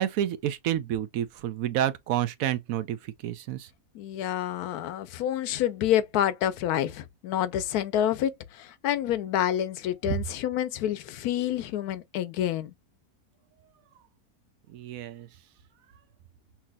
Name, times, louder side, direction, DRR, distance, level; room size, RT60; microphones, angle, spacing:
voice 1, 0.0-3.7 14.7-15.3, right 11 dB, 70° right, 1.0 m, -29 dB
voice 2, 3.9-12.7, left 11 dB, 85° left, 1.1 m, -28 dB
5.9 x 2.8 x 2.2 m
omnidirectional pair, 1.6 m